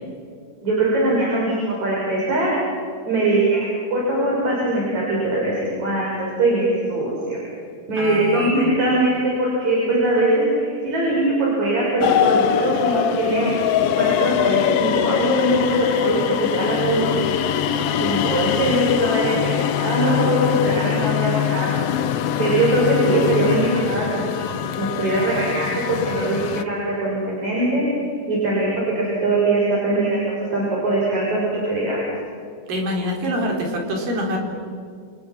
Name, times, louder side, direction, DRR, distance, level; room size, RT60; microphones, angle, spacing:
voice 1, 0.6-2.5 3.1-7.4 7.9-17.3 18.0-21.7 22.4-27.8 28.3-32.1, right 1 dB, 55° right, -5 dB, 7.0 m, -21 dB
voice 2, 8.0-8.5 32.7-34.4, equal, 75° right, 0 dB, 5.6 m, -25 dB
sound 1, 12.0-26.6, left 9 dB, 90° left, 1.3 m, -22 dB
29.5 x 28.5 x 6.0 m, 2.2 s
omnidirectional pair, 4.0 m